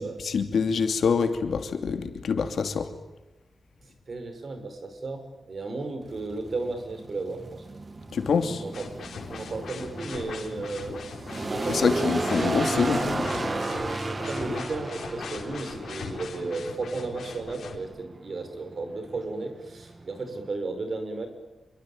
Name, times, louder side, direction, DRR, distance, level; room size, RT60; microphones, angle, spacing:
voice 1, 0.0-2.9 8.1-8.6 11.7-13.6, left 5 dB, 75° left, 7 dB, 2.9 m, -26 dB
voice 2, 3.8-7.6 8.6-8.9 9.3-12.5 13.8-21.3, right 3 dB, 45° right, 8 dB, 5.8 m, -34 dB
sound 1, 6.0-20.5, right 2 dB, 30° right, 1.8 m, -34 dB
sound 2, 8.7-17.8, left 6 dB, 90° left, 3.7 m, -40 dB
27.0 x 24.0 x 9.0 m, 1.1 s
wide cardioid pair, 155°, 0 cm